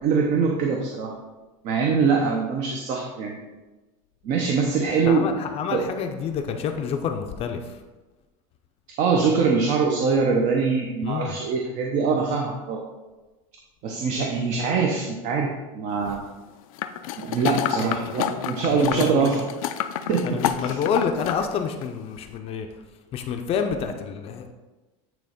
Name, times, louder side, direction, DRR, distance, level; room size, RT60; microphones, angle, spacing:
voice 1, 0.0-1.1 1.6-3.4 4.2-5.3 5.7-5.8 9.0-12.8 13.8-16.2 17.2-19.5 20.1-20.8, right 5 dB, 45° right, 0 dB, 0.9 m, -23 dB
voice 2, 5.1-7.7 11.0-11.4 17.8-19.3 20.2-22.7 23.1-24.5, left 6 dB, 35° left, 5 dB, 0.6 m, -28 dB
sound 1, 16.8-21.4 21.8-21.9, left 11 dB, 80° left, 0.5 m, -28 dB
9.2 x 3.1 x 5.1 m, 1.2 s
supercardioid pair, 140°, 18 cm